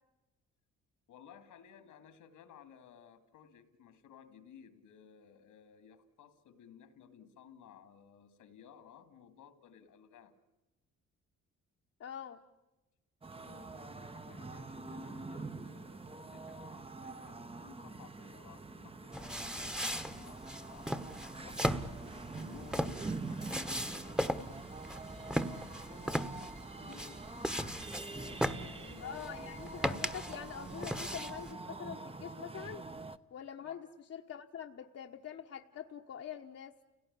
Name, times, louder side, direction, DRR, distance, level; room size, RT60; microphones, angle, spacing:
voice 1, 1.1-10.4 13.3-27.2 28.0-29.3 33.6-33.8, left 8 dB, 80° left, 11 dB, 2.5 m, -57 dB
voice 2, 12.0-12.4 29.0-32.8 33.3-36.7, left 8 dB, 55° left, 3 dB, 1.2 m, -45 dB
sound 1, 13.2-33.2, right 3 dB, 20° right, 0.9 m, -45 dB
sound 2, 19.1-31.5, equal, ahead, 1.2 m, -38 dB
sound 3, 24.3-29.9, right 3 dB, 80° right, 7.8 m, -62 dB
30.0 x 17.5 x 10.0 m, 1.0 s
cardioid pair, 90°, 30 cm